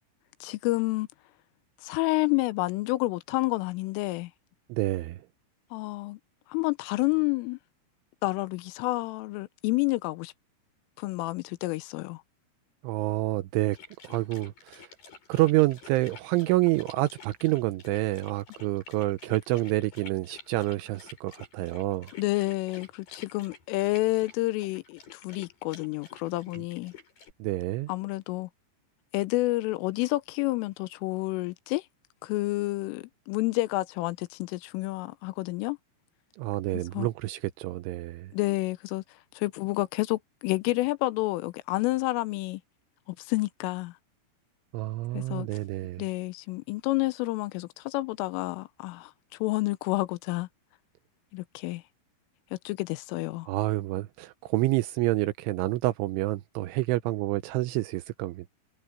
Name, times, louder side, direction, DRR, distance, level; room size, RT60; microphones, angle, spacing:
voice 1, 0.4-1.1 1.8-4.3 5.7-6.2 6.5-7.6 8.2-10.3 11.0-12.2 22.2-26.9 27.9-28.5 29.1-31.8 32.2-35.8 36.7-37.1 38.3-39.0 39.3-42.6 43.2-43.9 45.1-45.5 46.0-49.1 49.4-50.5 51.3-51.8 52.5-53.5, left 20 dB, 85° left, 3.2 m, -29 dB
voice 2, 4.7-5.2 12.8-13.8 14.0-14.9 15.3-22.1 27.4-27.9 36.4-38.3 44.7-46.0 53.5-58.5, right 18 dB, 85° right, 3.0 m, -28 dB
sound 1, 13.7-27.3, left 5 dB, 45° left, 8.3 m, -50 dB
omnidirectional pair, 5.8 m